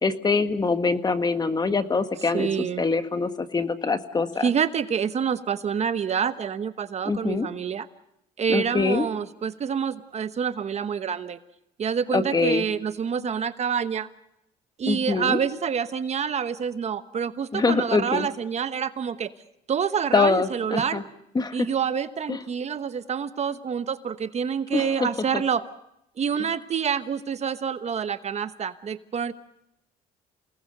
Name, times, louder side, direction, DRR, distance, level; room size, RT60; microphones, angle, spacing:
voice 1, 0.0-4.5 7.0-7.5 8.5-9.1 12.1-12.6 14.8-15.4 17.5-18.3 20.1-21.0 21.3-21.7 22.3-22.4 24.7-25.1, left 4 dB, 25° left, 10 dB, 1.6 m, -24 dB
voice 2, 2.3-2.8 4.4-7.9 8.4-11.4 11.8-14.1 14.8-19.3 19.7-21.0 21.5-25.6 26.2-29.3, right 7 dB, 40° right, 11 dB, 1.1 m, -27 dB
28.5 x 19.5 x 6.7 m, 0.82 s
cardioid pair, 110°, 17 cm